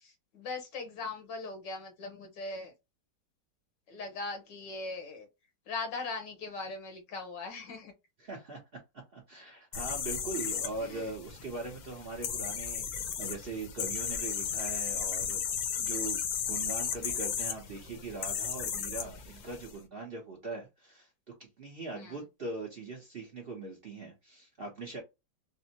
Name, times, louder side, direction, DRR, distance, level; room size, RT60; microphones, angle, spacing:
voice 1, 0.3-2.7 3.9-5.3 5.7-7.9 10.9-11.0 21.9-22.1, left 3 dB, 85° left, 1.7 m, -39 dB
voice 2, 8.2-8.8 9.1-15.4 15.8-21.1 21.4-25.0, right 3 dB, 50° right, 0.7 m, -41 dB
sound 1, 9.7-19.7, left 7 dB, 70° left, 1.1 m, -35 dB
4.3 x 2.0 x 2.7 m
omnidirectional pair, 1.9 m